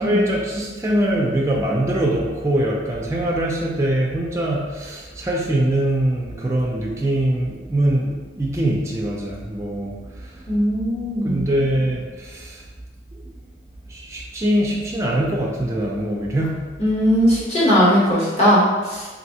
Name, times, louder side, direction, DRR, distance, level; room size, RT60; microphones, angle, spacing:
voice 1, 0.0-10.5 11.2-12.6 13.1-13.2 13.9-16.6, right 1 dB, 15° right, -3 dB, 0.3 m, -23 dB
voice 2, 10.5-11.5 16.8-19.1, equal, 35° left, -8 dB, 1.0 m, -18 dB
3.1 x 2.6 x 2.7 m, 1.3 s
head